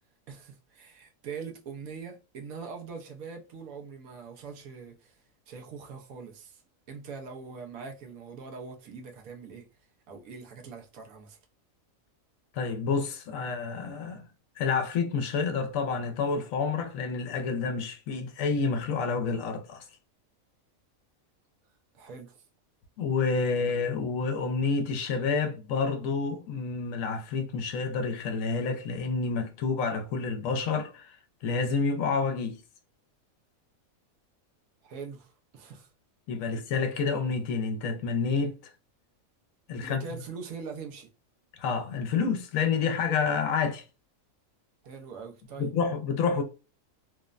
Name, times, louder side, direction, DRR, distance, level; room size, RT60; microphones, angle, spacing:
voice 1, 0.3-5.2 5.5-6.6 6.9-9.7 10.1-11.4 21.9-22.4 34.8-35.9 39.8-41.1 44.8-45.7, right 5 dB, 80° right, 1.1 m, -42 dB
voice 2, 12.5-14.3 14.6-19.8 23.0-31.2 31.4-32.6 36.3-38.7 39.7-40.0 41.6-43.8 45.6-46.4, left 5 dB, 75° left, 1.0 m, -29 dB
3.1 x 2.0 x 2.3 m
omnidirectional pair, 1.5 m